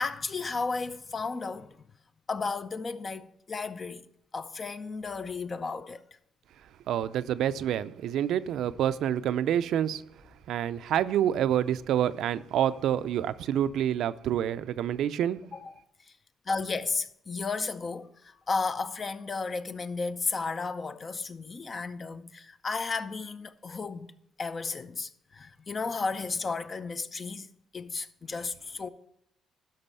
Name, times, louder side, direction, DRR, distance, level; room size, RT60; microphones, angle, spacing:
voice 1, 0.0-1.8 2.3-4.0 4.3-6.0 15.5-15.8 16.5-24.1 24.4-27.5 27.7-28.9, left 4 dB, 40° left, 0.6 m, -33 dB
voice 2, 6.9-10.0 10.5-15.4, right 10 dB, 80° right, 0.4 m, -27 dB
12.0 x 5.4 x 5.6 m
cardioid pair, 90°, 0 cm